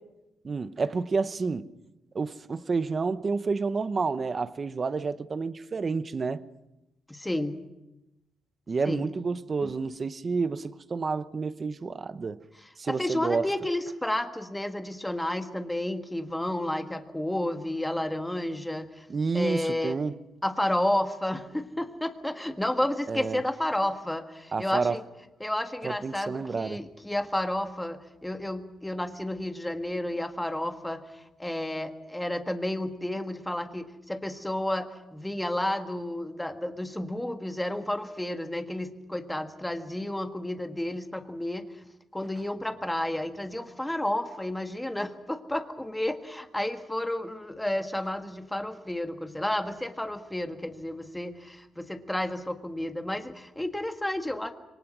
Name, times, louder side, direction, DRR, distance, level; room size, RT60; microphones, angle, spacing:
voice 1, 0.4-1.7 2.1-6.4 8.7-12.4 12.8-13.5 19.1-20.1 23.1-23.4 24.5-25.0 25.8-26.8, right 4 dB, 30° right, 0.8 m, -29 dB
voice 2, 7.1-7.6 8.8-9.1 12.6-19.1 19.3-20.0 20.4-25.0 25.4-41.7 42.1-54.5, left 1 dB, 5° left, 1.6 m, -31 dB
27.0 x 23.5 x 6.1 m
cardioid pair, 140°, 0 cm